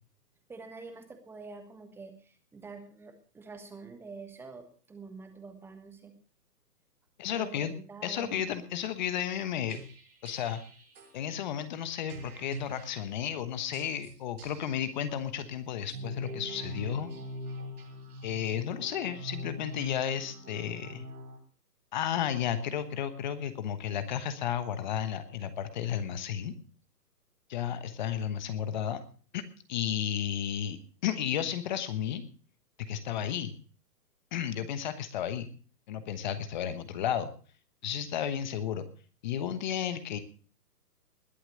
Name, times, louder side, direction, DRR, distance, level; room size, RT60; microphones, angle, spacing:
voice 1, 0.5-6.1 7.3-8.4, right 4 dB, 5° right, 7 dB, 1.3 m, -46 dB
voice 2, 7.2-7.7 8.0-9.8 10.2-10.6 11.1-17.1 18.2-21.0 21.9-26.5 27.5-29.0 29.3-29.4 29.7-32.2 32.8-33.5 34.3-35.5 35.9-37.3 37.8-38.9 39.2-40.2, left 9 dB, 30° left, 12 dB, 1.2 m, -33 dB
sound 1, 9.7-11.1 12.1-13.2 13.7-14.9 15.8-21.4, equal, 65° right, 6.2 m, -43 dB
20.5 x 7.7 x 6.4 m, 0.41 s
hypercardioid pair, 150°, 49 cm